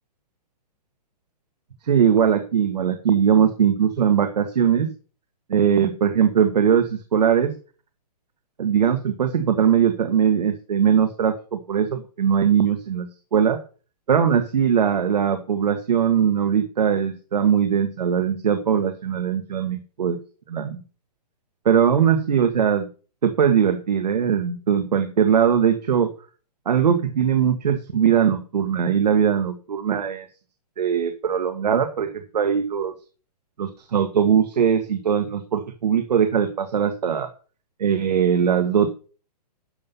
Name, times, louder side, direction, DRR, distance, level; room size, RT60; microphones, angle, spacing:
voice 1, 1.8-4.9 5.5-7.5 8.6-13.6 14.1-20.2 20.5-20.8 21.6-22.9 23.2-26.1 26.6-30.3 30.8-32.9 33.6-37.3 37.8-38.9, right 8 dB, 75° right, 8 dB, 1.6 m, -20 dB
12.0 x 5.7 x 5.5 m, 0.38 s
hypercardioid pair, 175°, 21 cm